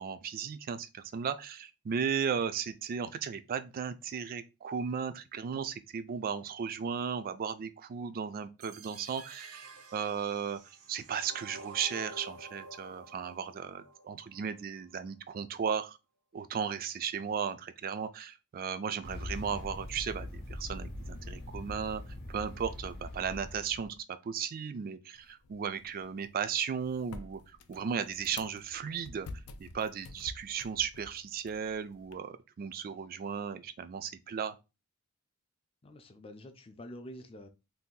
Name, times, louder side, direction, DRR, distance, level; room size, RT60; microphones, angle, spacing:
voice 1, 0.0-10.6 10.9-16.0 16.3-22.0 22.3-29.3 29.6-34.6, right 7 dB, 40° right, 0.3 m, -35 dB
sound 1, 8.6-14.6, right 2 dB, 75° right, 0.6 m, -50 dB
sound 2, 19.0-24.0, left 1 dB, 45° left, 0.8 m, -42 dB
sound 3, 25.1-32.1, left 3 dB, 85° left, 0.4 m, -50 dB
voice 2, 35.8-37.5, left 1 dB, 25° left, 0.4 m, -47 dB
2.7 x 2.4 x 3.7 m
head